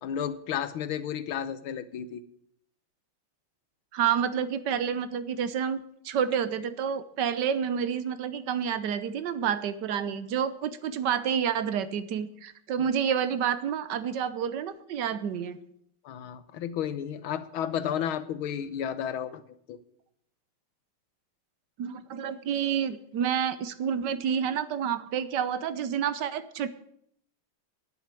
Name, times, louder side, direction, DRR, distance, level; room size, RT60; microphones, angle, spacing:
voice 1, 0.0-2.2 16.0-19.4 19.7-19.8, left 9 dB, 80° left, 13 dB, 1.7 m, -32 dB
voice 2, 3.9-15.6 21.8-26.7, right 8 dB, 65° right, 13 dB, 1.3 m, -29 dB
10.5 x 8.0 x 8.9 m, 0.69 s
omnidirectional pair, 2.3 m